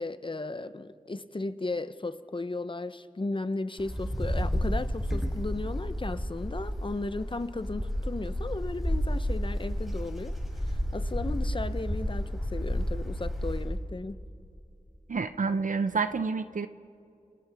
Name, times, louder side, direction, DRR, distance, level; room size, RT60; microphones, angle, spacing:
voice 1, 0.0-10.3 10.6-14.2, left 2 dB, 35° left, 12 dB, 0.7 m, -35 dB
Wind, 3.8-13.8, equal, ahead, 3.8 m, -31 dB
voice 2, 15.1-16.7, right 4 dB, 70° right, 11 dB, 0.6 m, -28 dB
29.0 x 28.0 x 3.5 m, 2.5 s
wide cardioid pair, 70°, 14 cm